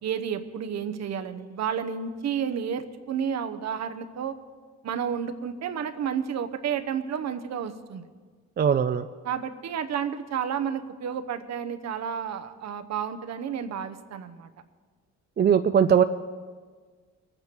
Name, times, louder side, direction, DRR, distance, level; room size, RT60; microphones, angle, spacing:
voice 1, 0.0-4.3 4.8-8.1 9.2-14.5, right 8 dB, 60° right, 9 dB, 0.9 m, -31 dB
voice 2, 8.6-9.1 15.4-16.0, right 8 dB, 35° right, 9 dB, 0.4 m, -20 dB
21.0 x 9.0 x 4.5 m, 1.5 s
cardioid pair, 90°, 30 cm